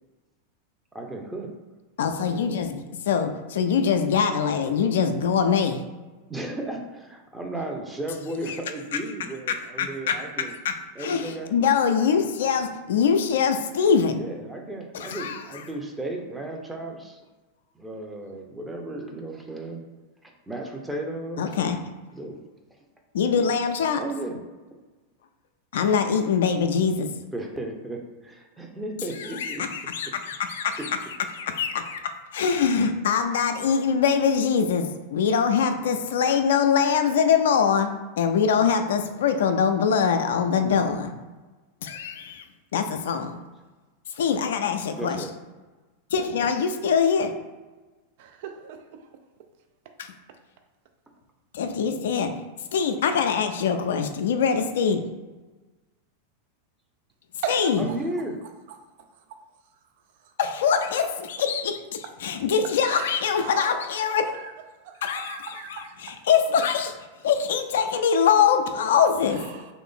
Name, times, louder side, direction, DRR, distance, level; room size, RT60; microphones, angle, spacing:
voice 1, 0.9-1.5 6.3-10.5 10.9-11.5 14.1-17.2 17.8-19.8 20.2-21.8 22.1-22.4 23.9-24.4 27.3-29.6 30.0-30.1 30.8-30.9 43.2-43.4 45.0-45.3 57.8-58.4, right 1 dB, 10° right, 1 dB, 0.6 m, -34 dB
voice 2, 2.0-5.8 8.1-8.6 8.9-9.1 9.5-14.2 14.9-15.7 21.4-21.8 23.1-24.1 25.7-27.1 29.0-41.2 41.8-42.4 42.7-43.4 44.2-45.3 46.1-47.3 50.0-50.1 51.5-52.4 52.7-55.1 57.5-57.9 60.4-64.3 65.0-66.9 67.2-69.4, left 6 dB, 70° left, 7 dB, 0.3 m, -23 dB
voice 3, 48.2-49.1 57.4-58.0 60.2-60.3 62.9-64.5 64.8-66.2 69.3-69.7, right 7 dB, 55° right, 5 dB, 0.4 m, -38 dB
3.1 x 2.5 x 3.7 m, 1.2 s
figure-of-eight pair, 95°, 0 cm